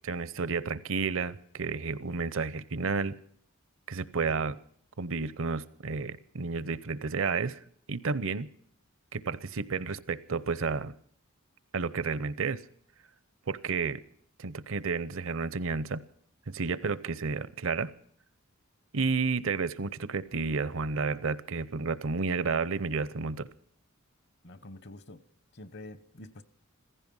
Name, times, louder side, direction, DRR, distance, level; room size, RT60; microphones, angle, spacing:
voice 1, 0.0-3.1 3.9-4.6 5.0-7.6 7.9-8.5 9.1-10.9 11.7-12.6 13.5-14.0 14.4-16.0 16.5-17.9 18.9-23.5, right 4 dB, 70° right, 17 dB, 0.7 m, -31 dB
voice 2, 24.4-25.2 25.5-26.4, left 1 dB, 55° left, 15 dB, 0.9 m, -47 dB
15.5 x 15.0 x 5.4 m, 0.63 s
head